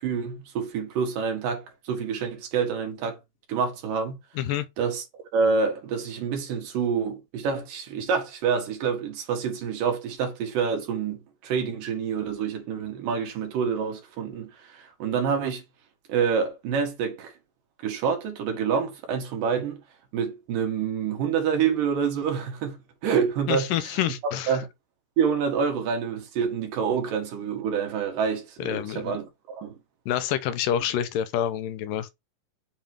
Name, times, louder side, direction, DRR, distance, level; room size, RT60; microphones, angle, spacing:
voice 1, 0.0-3.2 3.5-4.2 4.8-5.0 5.3-15.6 16.1-17.3 17.8-19.8 20.1-23.7 24.2-24.7 25.2-29.8, right 6 dB, 75° right, 3.1 m, -27 dB
voice 2, 23.5-24.6 28.6-29.2 30.1-32.1, left 10 dB, 90° left, 2.3 m, -27 dB
7.1 x 3.0 x 5.1 m
omnidirectional pair, 3.9 m